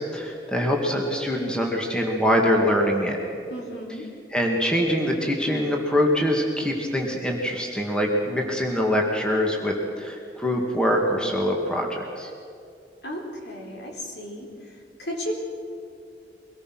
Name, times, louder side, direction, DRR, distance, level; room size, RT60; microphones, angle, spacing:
voice 1, 0.0-3.2 4.3-12.3, equal, 5° left, 0 dB, 2.2 m, -24 dB
voice 2, 3.5-4.0 13.0-14.5 15.0-15.3, equal, 70° left, 0 dB, 4.0 m, -34 dB
24.0 x 19.0 x 6.2 m, 2.5 s
head